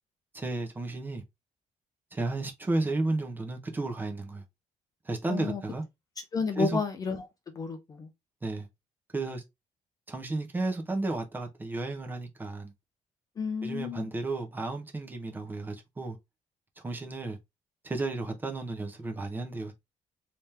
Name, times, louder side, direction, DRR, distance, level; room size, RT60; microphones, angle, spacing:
voice 1, 0.3-1.2 2.1-4.4 5.0-5.8 6.6-6.8 8.4-8.7 9.1-9.4 10.1-12.7 13.6-16.2 16.8-17.4 17.8-19.7, right 2 dB, 15° right, 0.7 m, -33 dB
voice 2, 5.3-5.6 6.3-7.3 7.5-8.1 13.4-14.1, left 4 dB, 25° left, 0.6 m, -31 dB
3.5 x 2.9 x 3.2 m
cardioid pair, 180°, 13 cm